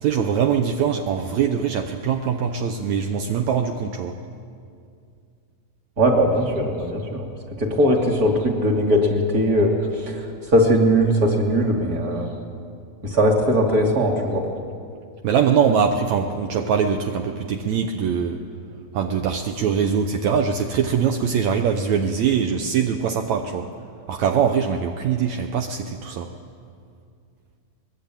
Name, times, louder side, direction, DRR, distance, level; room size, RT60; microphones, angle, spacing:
voice 1, 0.0-4.2 15.2-18.4 18.9-23.7 24.1-26.3, right 7 dB, 70° right, 5 dB, 2.2 m, -22 dB
voice 2, 6.0-7.3 7.6-12.3 13.0-14.4, equal, 30° right, 0 dB, 3.3 m, -20 dB
24.0 x 21.0 x 8.9 m, 2.4 s
omnidirectional pair, 3.5 m